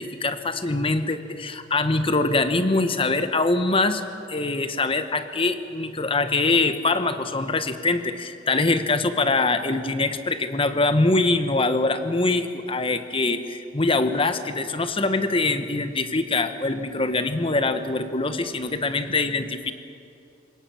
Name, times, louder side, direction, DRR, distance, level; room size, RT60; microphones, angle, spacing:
voice 1, 0.0-4.0 4.3-19.7, left 3 dB, 30° left, 9 dB, 1.2 m, -23 dB
28.0 x 18.0 x 7.2 m, 2.7 s
head